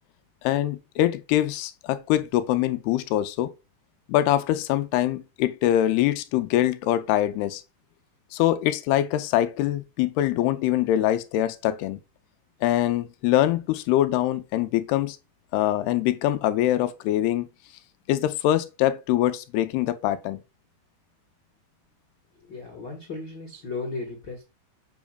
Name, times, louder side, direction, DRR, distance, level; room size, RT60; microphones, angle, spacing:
voice 1, 0.4-3.5 4.1-7.6 8.3-12.0 12.6-15.2 15.5-17.5 18.1-20.4, left 13 dB, 90° left, 2.6 m, -23 dB
voice 2, 22.4-24.4, left 3 dB, 55° left, 1.3 m, -35 dB
7.8 x 6.0 x 2.2 m
omnidirectional pair, 4.4 m